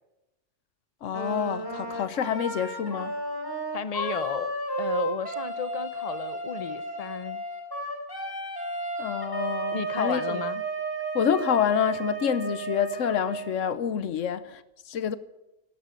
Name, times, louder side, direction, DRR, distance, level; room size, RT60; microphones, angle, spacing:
voice 1, 1.0-3.2 9.0-10.4 11.1-15.2, left 8 dB, 85° left, 1.2 m, -28 dB
Wind instrument woodwind instrument, 1.1-13.6, right 2 dB, 15° left, 3.3 m, -33 dB
voice 2, 3.7-7.4 9.7-10.6, left 7 dB, 40° left, 0.6 m, -33 dB
12.5 x 11.0 x 9.0 m
omnidirectional pair, 1.3 m